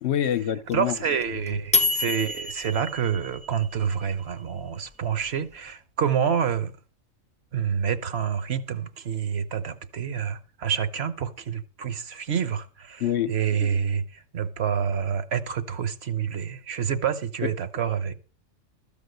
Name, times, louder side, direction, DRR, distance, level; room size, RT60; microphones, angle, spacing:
voice 1, 0.0-1.0 1.5-1.6 13.0-13.7, left 10 dB, 60° left, 0.9 m, -27 dB
sound 1, 0.7-3.9, left 3 dB, 10° left, 0.5 m, -27 dB
voice 2, 0.7-6.7 7.5-13.0 13.3-18.1, right 7 dB, 55° right, 1.2 m, -28 dB
13.5 x 5.2 x 8.0 m
omnidirectional pair, 1.3 m